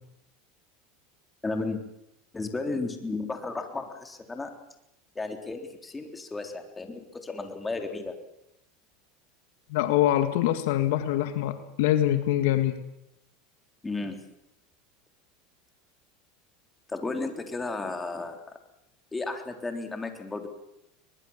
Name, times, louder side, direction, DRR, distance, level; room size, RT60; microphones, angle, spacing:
voice 1, 1.4-1.8 2.3-4.5 5.2-8.2 13.8-14.2 16.9-18.5 19.1-20.5, left 3 dB, 15° left, 5 dB, 3.7 m, -33 dB
voice 2, 9.7-12.7, left 13 dB, 75° left, 9 dB, 1.8 m, -24 dB
22.5 x 21.0 x 7.3 m, 0.86 s
supercardioid pair, 105°, 0 cm